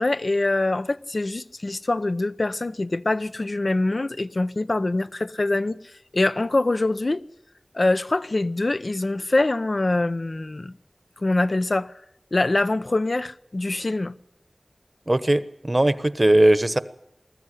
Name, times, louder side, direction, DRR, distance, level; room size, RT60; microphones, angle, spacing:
voice 1, 0.0-5.8 6.1-7.2 7.7-10.7 11.2-11.9 12.3-14.2, left 2 dB, 60° left, 0.7 m, -24 dB
voice 2, 15.1-16.8, right 1 dB, 35° right, 1.1 m, -19 dB
21.0 x 14.0 x 10.0 m
wide cardioid pair, 55°, 0 cm